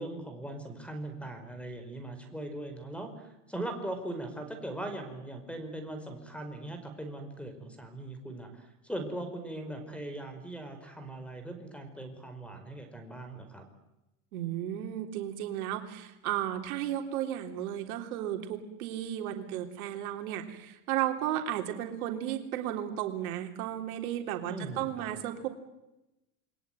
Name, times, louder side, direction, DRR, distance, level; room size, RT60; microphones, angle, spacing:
voice 1, 0.0-13.7 24.5-25.1, right 1 dB, 5° left, 8 dB, 5.1 m, -40 dB
voice 2, 14.3-25.5, right 11 dB, 85° right, 5 dB, 3.7 m, -34 dB
28.5 x 21.5 x 9.4 m, 0.96 s
supercardioid pair, 130°, 43 cm